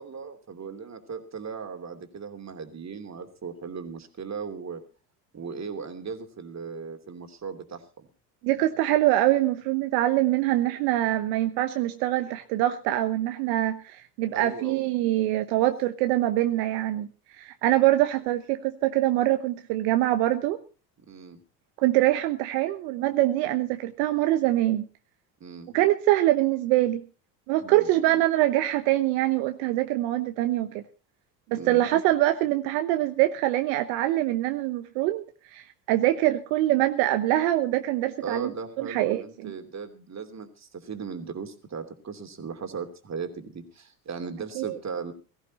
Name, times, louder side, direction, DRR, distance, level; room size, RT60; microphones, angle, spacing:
voice 1, 0.0-4.8 5.3-8.1 14.3-14.8 21.1-21.4 25.4-25.8 27.6-27.9 31.5-31.8 38.2-45.1, right 5 dB, 30° right, 7 dB, 2.9 m, -37 dB
voice 2, 8.4-17.1 17.4-20.6 21.8-24.8 25.7-27.0 27.5-30.8 31.5-35.2 35.5-38.5 38.8-39.5 44.6-44.8, right 15 dB, 75° right, 8 dB, 1.2 m, -24 dB
17.0 x 14.5 x 4.2 m, 0.34 s
hypercardioid pair, 75°, 49 cm